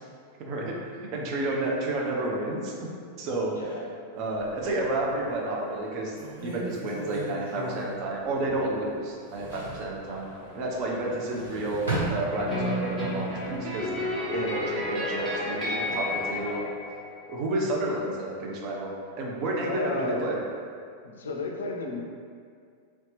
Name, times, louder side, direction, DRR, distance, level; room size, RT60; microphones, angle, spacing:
voice 1, 0.4-0.7 1.1-2.8 3.2-3.8 4.1-6.2 6.4-13.9 14.3-16.7 17.3-18.9 19.2-20.4, right 2 dB, 40° right, -2 dB, 0.6 m, -30 dB
voice 2, 3.5-3.9 15.9-16.1 18.0-18.2 19.6-20.3 21.0-22.0, left 3 dB, 65° left, 1 dB, 0.4 m, -33 dB
sound 1, 4.2-5.2 5.7-5.8 6.1-8.8 9.1-9.9 11.0-12.8 13.2-13.9, right 2 dB, 70° right, 1.1 m, -35 dB
sound 2, 10.0-16.6, left 1 dB, 30° left, 0.6 m, -45 dB
sound 3, 12.3-17.4, left 1 dB, 15° right, 1.2 m, -31 dB
3.0 x 2.8 x 3.2 m, 2.2 s
figure-of-eight pair, 90°, 0 cm